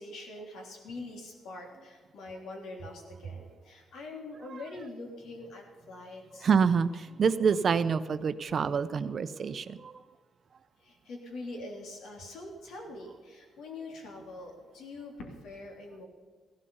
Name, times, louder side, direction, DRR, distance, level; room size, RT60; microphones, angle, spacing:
voice 1, 0.0-6.5 10.8-16.1, left 2 dB, 85° left, 2 dB, 3.3 m, -44 dB
voice 2, 6.4-9.9, right 6 dB, 40° right, 13 dB, 0.6 m, -27 dB
15.5 x 12.0 x 5.6 m, 1.5 s
cardioid pair, 150°, 0 cm